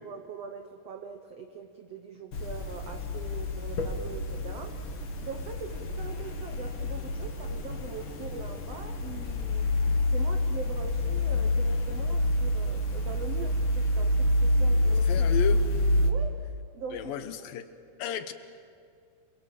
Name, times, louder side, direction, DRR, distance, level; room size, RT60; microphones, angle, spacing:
voice 1, 0.0-9.7 10.1-15.3 16.1-16.4 16.7-17.3, right 5 dB, 80° right, 5 dB, 1.4 m, -42 dB
sound 1, 2.3-16.1, left 1 dB, 45° left, 1.7 m, -28 dB
voice 2, 15.1-15.6 16.9-17.7 18.0-18.3, left 9 dB, 75° left, 10 dB, 2.5 m, -33 dB
28.0 x 22.0 x 7.6 m, 2.3 s
omnidirectional pair, 4.5 m